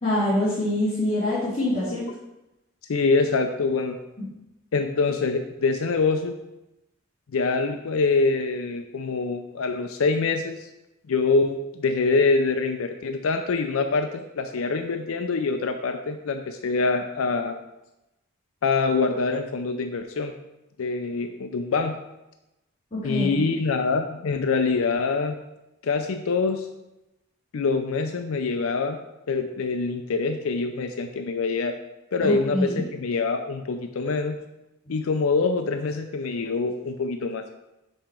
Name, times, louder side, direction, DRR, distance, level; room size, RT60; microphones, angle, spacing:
voice 1, 0.0-2.1 4.2-4.3 22.9-23.4 32.2-32.8, left 1 dB, 30° left, -12 dB, 1.9 m, -25 dB
voice 2, 2.9-4.0 4.7-6.3 7.3-10.7 11.1-17.5 18.6-20.3 20.8-22.0 23.0-25.4 25.8-26.7 27.5-29.0 29.3-31.7 32.1-34.4 34.9-37.4, left 4 dB, 75° left, 7 dB, 0.5 m, -25 dB
5.5 x 5.0 x 4.4 m, 0.94 s
head